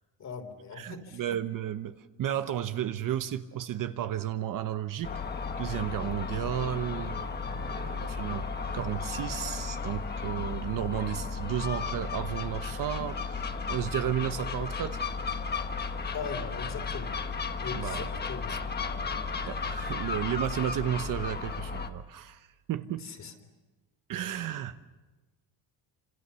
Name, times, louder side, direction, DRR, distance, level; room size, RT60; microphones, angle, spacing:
voice 1, 0.2-1.2 16.1-17.2 17.6-18.6 23.0-23.3, left 5 dB, 40° left, 6 dB, 3.3 m, -39 dB
voice 2, 0.7-1.9 2.2-5.1 5.6-8.5 8.7-15.0 17.7-18.2 18.5-18.6 19.4-23.1 24.1-24.8, right 11 dB, 50° right, 10 dB, 1.0 m, -33 dB
Gull seagull, 5.0-21.9, left 4 dB, 25° left, 1.3 m, -34 dB
28.5 x 26.5 x 7.0 m, 1.2 s
cardioid pair, 155°, 43 cm